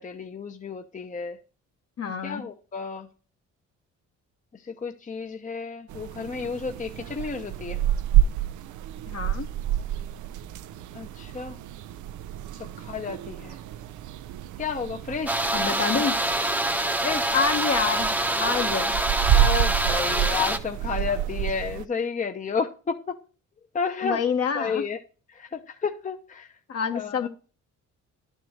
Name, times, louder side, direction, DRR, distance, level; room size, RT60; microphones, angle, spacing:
voice 1, 0.0-1.4 2.2-3.1 4.7-7.8 10.9-11.6 12.8-13.6 14.6-15.4 17.0-17.3 19.3-23.2 23.7-24.2 24.5-25.0 25.4-26.5 26.9-27.3, left 5 dB, 25° left, 0.8 m, -31 dB
voice 2, 2.0-2.4 9.1-9.5 15.5-16.2 17.3-18.1 18.4-18.9 24.0-24.8 26.7-27.3, left 6 dB, 55° left, 1.3 m, -27 dB
sound 1, 5.9-21.8, right 11 dB, 75° right, 0.6 m, -29 dB
sound 2, 15.3-20.6, right 1 dB, 5° right, 0.9 m, -25 dB
11.0 x 4.5 x 6.3 m
cardioid pair, 90°, 30 cm